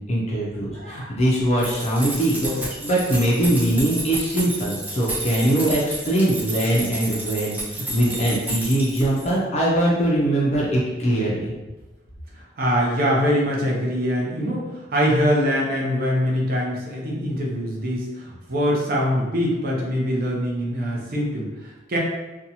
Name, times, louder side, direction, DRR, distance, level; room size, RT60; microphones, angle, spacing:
voice 1, 0.0-11.5, right 1 dB, 35° left, -4 dB, 0.5 m, -22 dB
voice 2, 0.7-1.1 2.4-2.6 3.4-3.8 12.6-22.0, equal, 50° right, -3 dB, 0.6 m, -23 dB
sound 1, 1.6-9.3, right 2 dB, 10° right, 0.6 m, -31 dB
2.7 x 2.2 x 2.7 m, 1.1 s
head